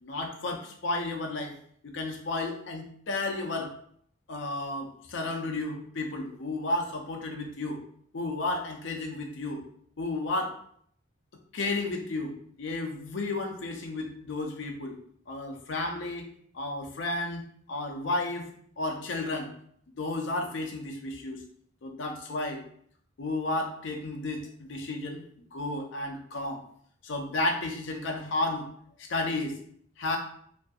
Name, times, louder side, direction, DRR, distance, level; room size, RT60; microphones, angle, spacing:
voice 1, 0.0-1.5 1.8-3.7 4.3-7.8 8.1-9.6 10.0-10.6 11.5-14.9 15.3-18.5 18.8-19.5 20.0-21.4 21.8-22.6 23.2-25.2 25.5-26.6 27.0-28.7 29.0-29.6 30.0-30.2, left 2 dB, 70° left, 3 dB, 0.5 m, -32 dB
2.6 x 2.4 x 2.3 m, 0.62 s
head